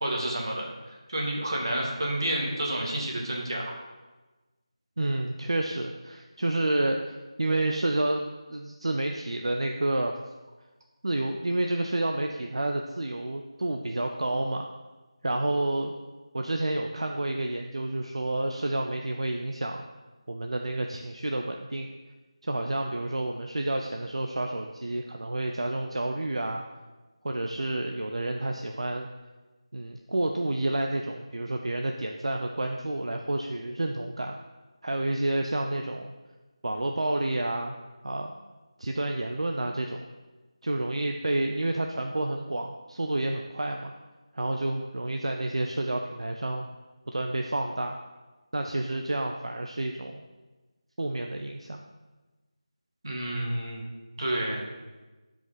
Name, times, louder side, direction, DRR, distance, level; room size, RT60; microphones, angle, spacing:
voice 1, 0.0-3.7 53.0-53.8 54.2-54.7, right 1 dB, 45° right, -1 dB, 1.7 m, -30 dB
voice 2, 5.0-8.2 8.5-10.2 11.0-14.7 15.2-15.9 16.3-19.8 20.3-21.9 22.4-26.6 27.2-29.1 29.7-34.4 34.8-36.1 36.6-37.8 38.0-38.3 38.8-40.0 40.6-43.9 44.3-46.7 47.1-48.0 48.5-50.2 51.0-51.8, right 1 dB, 65° right, 3 dB, 0.6 m, -29 dB
10.5 x 5.1 x 4.1 m, 1.2 s
figure-of-eight pair, 175°, 3 cm